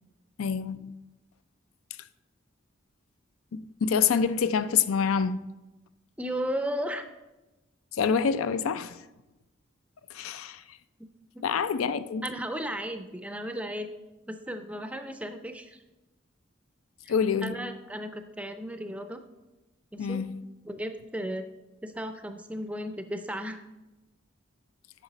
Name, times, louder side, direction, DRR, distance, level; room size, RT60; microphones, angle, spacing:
voice 1, 0.4-0.9 3.5-5.5 8.0-9.0 10.1-10.6 11.4-12.3 17.1-17.6 20.0-20.4, left 6 dB, 90° left, 0.4 m, -27 dB
voice 2, 6.2-7.0 11.0-11.1 11.3-11.4 12.2-13.9 14.3-15.8 17.0-17.1 17.4-19.2 19.9-20.2 20.6-21.5 21.8-23.6, equal, 5° right, 0.4 m, -35 dB
9.1 x 6.2 x 4.0 m
head